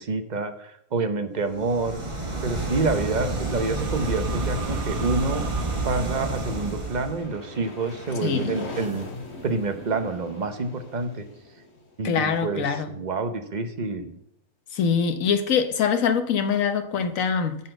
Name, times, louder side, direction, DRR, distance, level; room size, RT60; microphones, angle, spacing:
voice 1, 0.0-2.0 2.4-5.5 5.8-9.1 9.4-11.3 12.0-14.2, right 3 dB, 40° right, 0.8 m, -28 dB
sound 1, 1.5-7.2, right 2 dB, 20° right, 1.5 m, -29 dB
sound 2, 2.6-8.2, right 6 dB, 80° right, 1.3 m, -41 dB
sound 3, 6.3-12.9, left 3 dB, 50° left, 2.4 m, -41 dB
voice 2, 8.2-8.5 12.0-12.9 14.7-17.6, left 6 dB, 70° left, 1.3 m, -23 dB
11.0 x 4.2 x 7.8 m
omnidirectional pair, 1.5 m